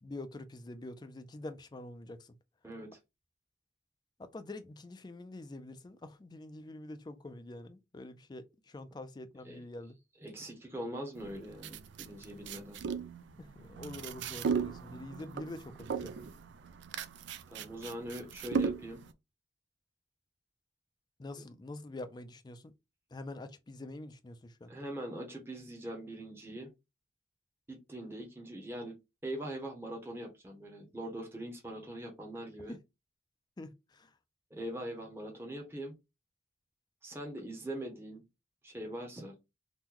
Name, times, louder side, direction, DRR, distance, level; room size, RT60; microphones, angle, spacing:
voice 1, 0.0-2.3 4.2-10.0 13.4-16.2 21.2-22.7 23.1-24.7 32.7-32.8 33.6-34.1, left 2 dB, 20° left, 0.3 m, -46 dB
voice 2, 2.6-3.0 9.4-9.6 10.2-12.8 17.5-19.0 21.3-21.4 24.7-26.7 27.7-28.9 29.2-32.8 34.5-35.9 37.0-38.2 38.6-39.3, right 1 dB, 10° right, 0.7 m, -42 dB
sound 1, 11.2-19.1, right 6 dB, 70° right, 0.3 m, -37 dB
2.9 x 2.1 x 3.6 m
head